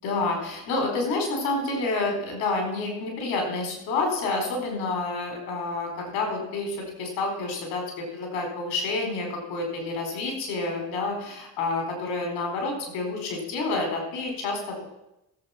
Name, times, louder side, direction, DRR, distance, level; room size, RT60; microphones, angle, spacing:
voice 1, 0.0-14.8, left 3 dB, 80° left, 2 dB, 4.7 m, -29 dB
15.5 x 8.0 x 5.9 m, 0.87 s
supercardioid pair, 75°, 45 cm